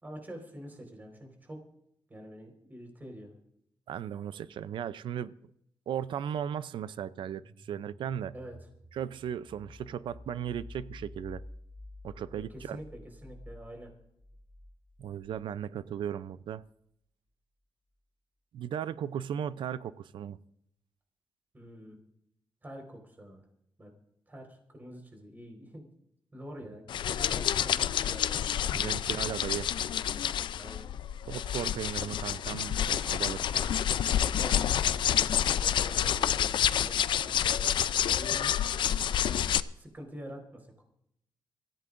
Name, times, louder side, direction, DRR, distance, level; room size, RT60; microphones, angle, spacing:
voice 1, 0.0-1.6 2.1-3.3 8.3-8.6 12.5-13.9 21.5-22.0 22.6-23.4 23.8-23.9 24.3-25.9 26.3-28.8 30.5-30.9 34.4-35.0 35.6-37.7 38.1-38.5 39.7-40.8, equal, 20° right, 2 dB, 4.3 m, -46 dB
voice 2, 3.9-5.3 5.9-8.3 8.9-11.4 12.0-12.8 15.0-16.6 18.5-20.4 28.7-29.7 31.3-33.6, right 9 dB, 85° right, 16 dB, 0.5 m, -36 dB
sound 1, 7.1-15.8, left 2 dB, 15° left, 4.6 m, -50 dB
sound 2, 26.9-39.6, left 10 dB, 75° left, 0.4 m, -28 dB
24.5 x 15.0 x 2.5 m, 0.74 s
cardioid pair, 115°, 8 cm